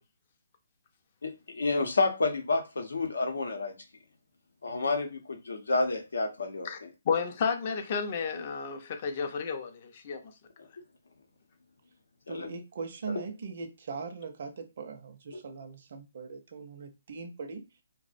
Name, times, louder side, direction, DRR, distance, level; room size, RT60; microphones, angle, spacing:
voice 1, 1.2-3.7 4.6-6.9 12.3-12.5 13.1-13.2 15.3-15.4, left 3 dB, 85° left, 0.7 m, -30 dB
voice 2, 7.1-10.2, left 6 dB, 40° left, 0.4 m, -31 dB
voice 3, 12.3-17.6, right 4 dB, 50° right, 0.5 m, -40 dB
2.4 x 2.0 x 2.5 m
hypercardioid pair, 160°, 0 cm